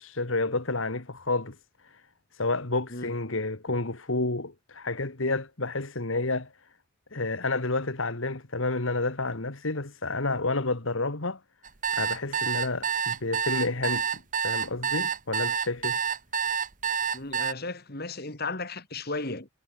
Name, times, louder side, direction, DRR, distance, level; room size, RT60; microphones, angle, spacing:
voice 1, 0.0-1.6 1.8-2.0 2.3-6.5 7.1-11.4 11.9-16.0, left 2 dB, 70° left, 2.0 m, -30 dB
sound 1, 11.6-17.5, right 7 dB, 40° right, 1.8 m, -28 dB
voice 2, 17.1-19.5, left 3 dB, 45° left, 2.9 m, -35 dB
head